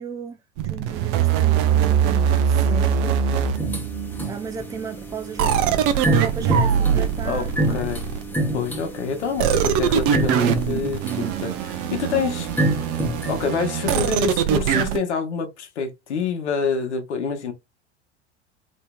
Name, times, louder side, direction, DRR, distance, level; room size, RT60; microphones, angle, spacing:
voice 1, 0.0-3.4 4.2-7.8, right 5 dB, 10° right, 0.4 m, -35 dB
sound 1, 0.6-4.3 5.4-8.5 9.4-15.0, right 8 dB, 50° right, 0.6 m, -22 dB
sound 2, 3.5-13.5, right 1 dB, 5° left, 1.0 m, -28 dB
voice 2, 7.2-8.0 8.5-12.5 13.3-17.5, left 5 dB, 80° left, 0.9 m, -27 dB
3.1 x 2.8 x 2.2 m
hypercardioid pair, 85°, 34 cm